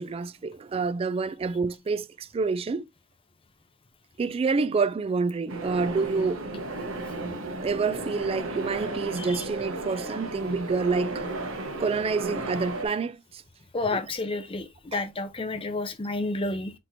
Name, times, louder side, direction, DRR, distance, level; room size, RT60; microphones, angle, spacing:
voice 1, 0.0-2.8 4.2-6.5 7.6-11.3 11.8-13.4 13.9-14.0 14.9-15.0, right 4 dB, 30° right, 0.3 m, -28 dB
sound 1, 5.5-12.9, right 2 dB, 85° right, 1.0 m, -34 dB
voice 2, 13.7-16.7, left 2 dB, 30° left, 0.7 m, -30 dB
4.5 x 4.2 x 2.7 m
head